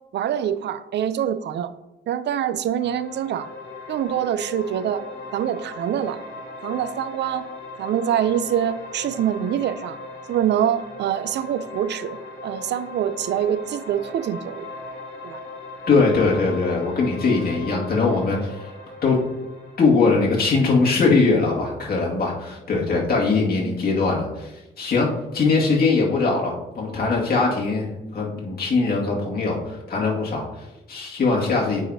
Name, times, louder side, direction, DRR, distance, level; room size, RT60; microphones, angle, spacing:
voice 1, 0.1-1.7 2.1-3.5 3.9-5.0 5.3-6.2 6.6-7.5 7.8-10.0 10.3-12.2 12.4-14.6 15.2-15.4, right 10 dB, 60° right, 13 dB, 0.5 m, -25 dB
sound 1, 2.8-19.8, left 2 dB, 75° left, 2.4 m, -38 dB
voice 2, 15.9-18.7 19.0-19.2 19.8-24.5 24.8-25.1 25.3-27.9 28.1-31.8, left 4 dB, 50° left, -3 dB, 2.2 m, -21 dB
8.7 x 4.9 x 2.8 m, 0.96 s
cardioid pair, 90°, 20 cm